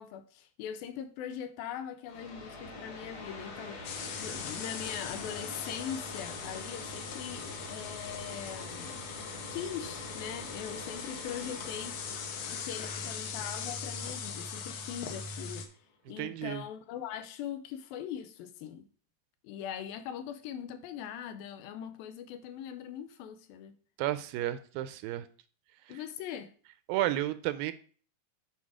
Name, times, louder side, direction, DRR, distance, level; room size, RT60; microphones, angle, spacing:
voice 1, 0.0-9.1 9.5-12.0 12.5-15.7 16.1-18.9 19.4-23.7 25.9-26.5, left 9 dB, 85° left, 2.4 m, -41 dB
sound 1, 2.1-15.4, left 2 dB, 55° left, 3.4 m, -45 dB
sound 2, 3.8-15.7, left 6 dB, 70° left, 2.1 m, -41 dB
voice 2, 16.2-16.6 24.0-25.3 25.9-26.0 26.9-27.7, right 14 dB, 80° right, 2.2 m, -32 dB
9.2 x 4.3 x 4.8 m
omnidirectional pair, 4.3 m